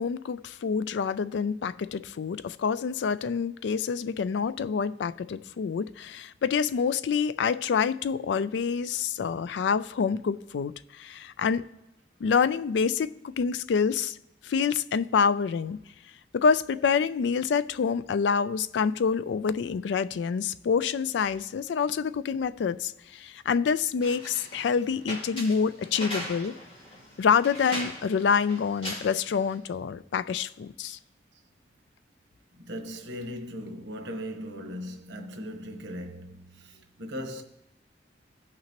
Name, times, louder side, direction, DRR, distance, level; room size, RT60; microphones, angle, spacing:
voice 1, 0.0-11.6 12.2-14.2 14.4-15.8 16.3-26.5 27.2-31.0, left 6 dB, 80° left, 0.3 m, -27 dB
sound 1, 24.0-29.6, equal, 30° left, 2.4 m, -40 dB
voice 2, 32.5-37.4, equal, 85° right, 1.0 m, -38 dB
16.5 x 5.8 x 2.9 m
head